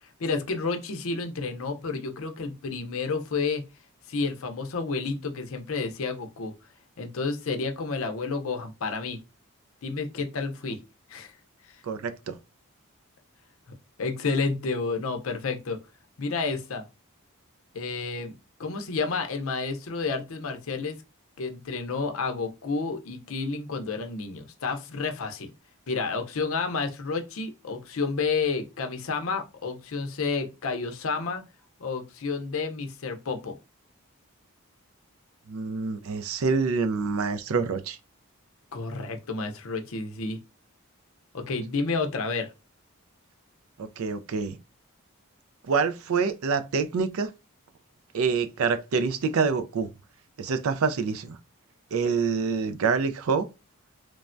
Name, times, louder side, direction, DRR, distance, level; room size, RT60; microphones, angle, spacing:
voice 1, 0.2-3.6 4.1-6.5 7.0-9.2 9.8-10.8 11.1-11.3 11.7-11.8 14.0-15.8 16.2-16.8 17.7-21.0 21.4-25.5 25.9-31.4 31.8-33.6 38.7-40.4 41.3-42.5, left 4 dB, 70° left, 0.6 m, -30 dB
voice 2, 11.8-12.4 35.5-38.0 43.8-44.6 45.6-47.3 48.1-49.9 50.4-51.4 51.9-53.5, right 5 dB, 75° right, 0.4 m, -26 dB
3.2 x 2.1 x 2.5 m
head